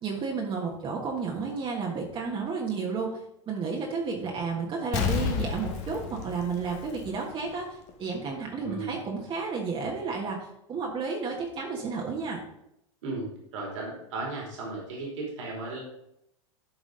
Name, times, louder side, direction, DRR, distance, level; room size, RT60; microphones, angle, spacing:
voice 1, 0.0-3.2 3.5-12.4, right 5 dB, 30° right, -1 dB, 1.5 m, -32 dB
Explosion, 4.9-7.5 7.9-8.0, left 7 dB, 45° left, 1.2 m, -31 dB
voice 2, 8.6-9.0 13.0-13.2 13.5-15.8, right 3 dB, 65° right, -1 dB, 3.2 m, -35 dB
11.5 x 4.9 x 3.9 m, 0.80 s
hypercardioid pair, 95°, 17 cm